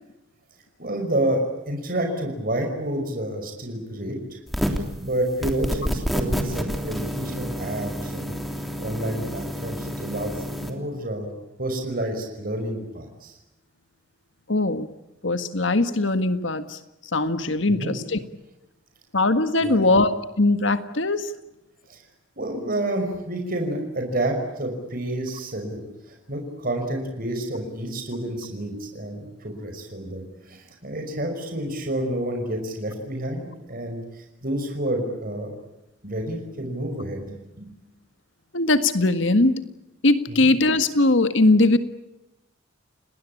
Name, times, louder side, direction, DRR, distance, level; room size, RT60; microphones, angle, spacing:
voice 1, 0.8-11.3 11.6-13.4 17.7-18.0 19.6-20.0 21.9-22.0 22.4-25.8 26.1-35.6 36.0-37.7 40.3-40.5, right 1 dB, 45° right, 3 dB, 5.6 m, -29 dB
sound 1, 4.5-4.9 5.4-10.7, equal, ahead, 3.3 m, -29 dB
voice 2, 14.5-14.9 15.2-16.8 17.1-18.2 19.1-20.1 20.4-21.3 38.5-39.5 40.0-41.8, left 2 dB, 65° left, 10 dB, 1.7 m, -20 dB
29.0 x 20.0 x 8.6 m, 0.94 s
head